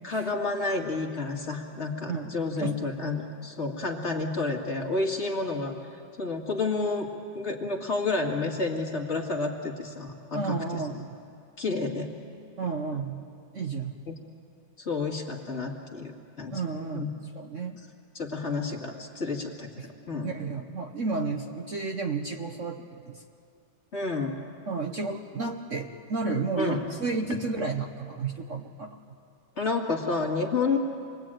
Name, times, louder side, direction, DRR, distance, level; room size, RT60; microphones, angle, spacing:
voice 1, 0.0-5.7 6.2-7.1 7.3-10.8 11.6-12.1 12.9-13.0 14.1-14.2 14.8-16.6 16.9-17.1 18.1-20.4 23.9-24.4 26.6-26.9 29.6-30.8, left 3 dB, 35° left, 1 dB, 2.2 m, -30 dB
voice 2, 2.1-2.8 10.3-11.2 12.6-13.3 13.5-14.0 16.5-17.1 17.3-17.8 19.8-19.9 20.2-23.2 24.7-29.0, right 4 dB, 50° right, 3 dB, 1.1 m, -32 dB
28.0 x 21.0 x 8.9 m, 2.5 s
omnidirectional pair, 2.0 m